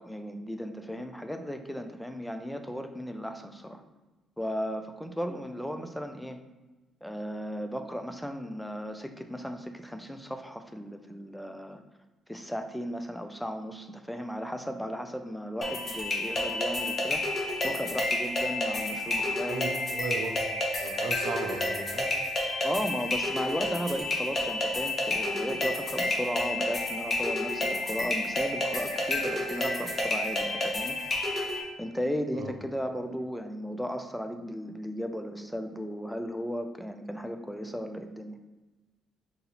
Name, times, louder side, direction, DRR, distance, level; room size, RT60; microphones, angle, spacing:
voice 1, 0.0-3.8 4.4-6.4 7.0-11.8 12.3-19.6 22.6-31.0 31.8-38.4, equal, 5° left, 6 dB, 0.5 m, -35 dB
sound 1, 15.6-31.6, left 1 dB, 40° left, 1.0 m, -30 dB
voice 2, 19.5-20.3 20.8-22.1 32.3-32.5, right 4 dB, 70° right, 3 dB, 0.6 m, -36 dB
4.0 x 2.6 x 4.0 m, 1.1 s
hypercardioid pair, 50°, 0 cm